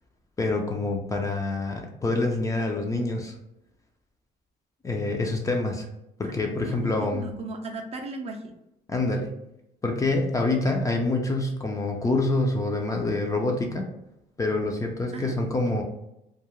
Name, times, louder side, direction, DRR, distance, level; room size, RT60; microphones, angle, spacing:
voice 1, 0.4-3.4 4.8-5.9 6.2-7.3 8.9-9.4 9.8-13.9 14.4-15.8, left 2 dB, 20° left, 2 dB, 0.4 m, -26 dB
voice 2, 6.7-8.4 15.1-15.4, right 3 dB, 40° right, 3 dB, 0.5 m, -36 dB
2.3 x 2.1 x 3.0 m, 0.86 s
cardioid pair, 110°, 17 cm